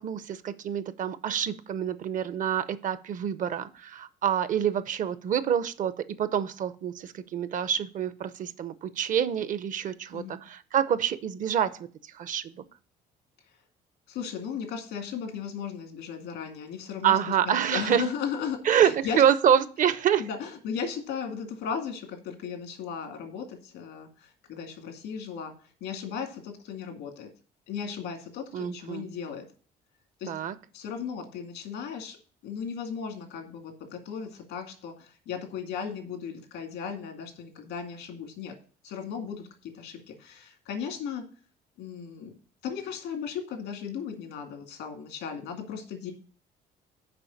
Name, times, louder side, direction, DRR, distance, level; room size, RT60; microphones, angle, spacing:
voice 1, 0.0-11.9 12.1-12.6 17.0-18.0 18.6-20.3 28.5-29.1 30.3-30.6, right 9 dB, 50° right, 14 dB, 0.7 m, -27 dB
voice 2, 14.1-17.2 17.4-19.2 20.2-25.5 25.8-27.3 27.7-29.4 30.2-30.3 30.7-32.2 32.4-38.6 38.8-41.2 41.8-42.3 42.6-46.1, left 7 dB, 85° left, 4 dB, 2.3 m, -36 dB
6.9 x 5.1 x 7.1 m, 0.40 s
cardioid pair, 110°, 17 cm